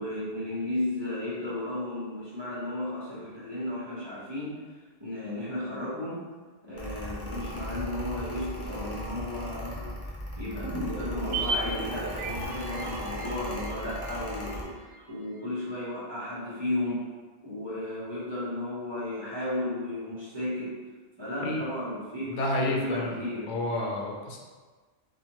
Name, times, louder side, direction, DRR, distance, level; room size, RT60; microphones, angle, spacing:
voice 1, 0.0-6.2 6.6-10.0 10.4-17.1 17.4-20.8 21.2-23.5, left 1 dB, 25° right, -9 dB, 0.9 m, -34 dB
Mechanical fan, 6.7-14.6, equal, 20° left, 0.4 m, -37 dB
sound 1, 10.6-15.1 15.3-15.4, right 2 dB, 80° right, 0.9 m, -36 dB
voice 2, 22.3-23.2 23.5-24.4, left 2 dB, 75° left, -1 dB, 0.9 m, -30 dB
4.1 x 2.5 x 3.0 m, 1.4 s
omnidirectional pair, 1.2 m